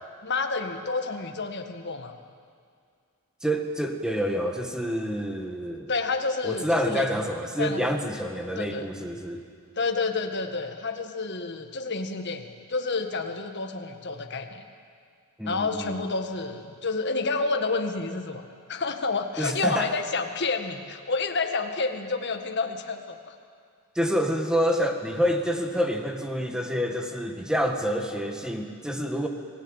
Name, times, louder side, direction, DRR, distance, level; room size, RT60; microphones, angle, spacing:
voice 1, 0.2-2.1 5.9-7.0 7.6-7.9 8.6-8.9 9.7-14.7 15.5-18.4 18.7-23.3, left 3 dB, 50° left, 5 dB, 1.8 m, -29 dB
voice 2, 3.4-5.9 6.4-9.4 15.4-16.0 19.4-19.9 23.9-29.3, equal, 5° right, 4 dB, 1.7 m, -27 dB
28.0 x 18.0 x 9.1 m, 2.2 s
head